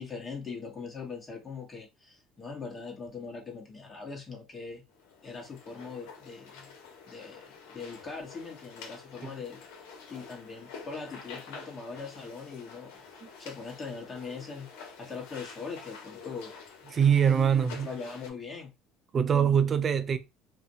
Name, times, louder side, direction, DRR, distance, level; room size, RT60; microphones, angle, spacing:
voice 1, 0.0-4.8 5.2-6.7 7.1-9.6 10.1-13.0 13.4-16.5 17.8-18.7, left 4 dB, 25° left, 1.1 m, -41 dB
sound 1, 4.9-18.3, left 5 dB, 80° left, 0.7 m, -48 dB
voice 2, 16.9-17.9 19.1-20.2, right 7 dB, 35° right, 0.4 m, -23 dB
2.4 x 2.1 x 2.7 m
supercardioid pair, 100°, 0 cm